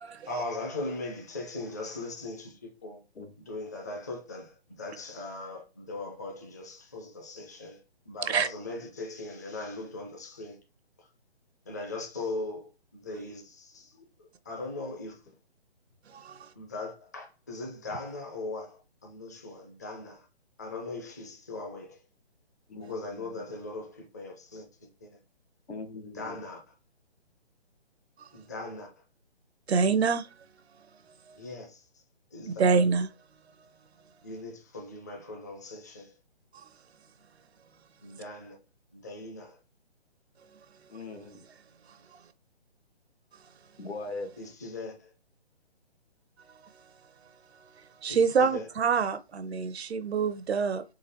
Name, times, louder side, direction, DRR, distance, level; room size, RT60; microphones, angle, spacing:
voice 1, 0.3-3.0 3.4-7.8 8.1-10.6 11.0-11.1 11.7-15.2 16.5-20.3 20.6-22.0 22.7-25.2 26.0-26.7 28.3-29.0 31.3-32.0 32.3-32.7 34.2-36.1 38.0-38.6 38.9-39.6 44.4-45.1 48.1-48.7, left 2 dB, 15° left, 0.5 m, -39 dB
voice 2, 16.1-16.5 28.2-28.3 29.7-30.3 32.5-33.1 36.5-36.6 48.0-50.8, right 5 dB, 75° right, 0.7 m, -26 dB
voice 3, 22.7-23.5 25.7-26.4 40.9-41.4 43.8-44.3, left 3 dB, 85° left, 1.5 m, -41 dB
4.0 x 3.2 x 4.1 m
hypercardioid pair, 160°, 32 cm